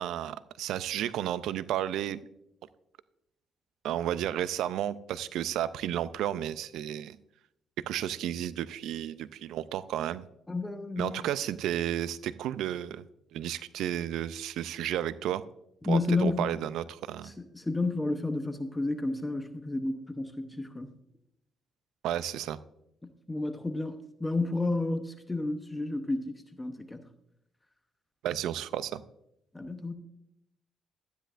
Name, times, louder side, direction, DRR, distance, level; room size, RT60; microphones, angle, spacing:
voice 1, 0.0-2.2 3.8-7.2 7.9-10.2 11.0-13.0 13.3-15.4 15.9-17.3 22.0-22.6 28.2-29.0, right 11 dB, 85° right, 16 dB, 0.4 m, -32 dB
voice 2, 10.5-11.3 15.8-16.4 17.2-20.9 23.0-27.0 29.5-29.9, left 2 dB, 15° left, 8 dB, 0.8 m, -31 dB
12.5 x 10.0 x 2.5 m, 0.80 s
cardioid pair, 90°, 0 cm